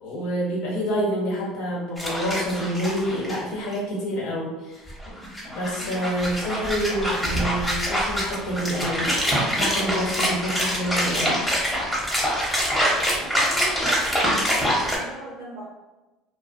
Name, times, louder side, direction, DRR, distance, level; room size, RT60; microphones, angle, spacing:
voice 1, 0.0-4.9 5.2-9.1 9.5-11.4, equal, 75° left, -4 dB, 0.9 m, -27 dB
sound 1, 2.0-3.4 3.7-3.8 4.9-15.0, equal, 5° left, 0.8 m, -25 dB
voice 2, 13.1-15.7, right 1 dB, 80° right, -4 dB, 0.6 m, -38 dB
2.3 x 2.2 x 2.4 m, 1.1 s
supercardioid pair, 85°, 0 cm